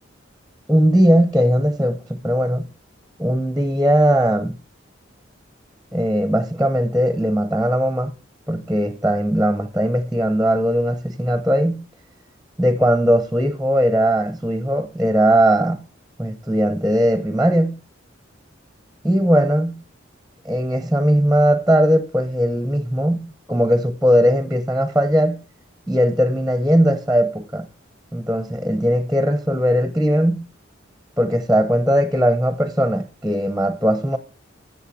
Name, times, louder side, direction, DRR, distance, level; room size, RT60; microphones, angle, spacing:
voice 1, 0.7-2.7 3.2-4.6 5.9-8.1 8.5-11.8 12.6-15.8 16.2-17.8 19.0-19.8 20.4-25.4 25.9-27.7 28.1-30.5 31.2-34.2, equal, ahead, 0.8 m, -19 dB
15.5 x 6.7 x 4.2 m
head